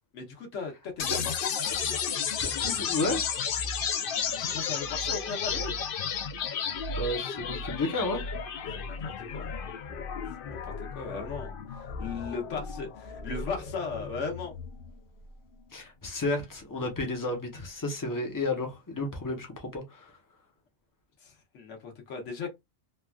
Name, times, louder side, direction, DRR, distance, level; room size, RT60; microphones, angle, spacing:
voice 1, 0.1-1.5 4.4-5.7 8.7-9.5 10.4-14.6 21.2-22.5, left 5 dB, 80° left, 1.2 m, -37 dB
sound 1, 1.0-15.0, left 6 dB, 60° left, 0.6 m, -33 dB
voice 2, 2.4-3.3 6.9-8.2 15.7-20.1, left 2 dB, 20° left, 0.7 m, -32 dB
3.2 x 2.3 x 2.2 m
omnidirectional pair, 1.2 m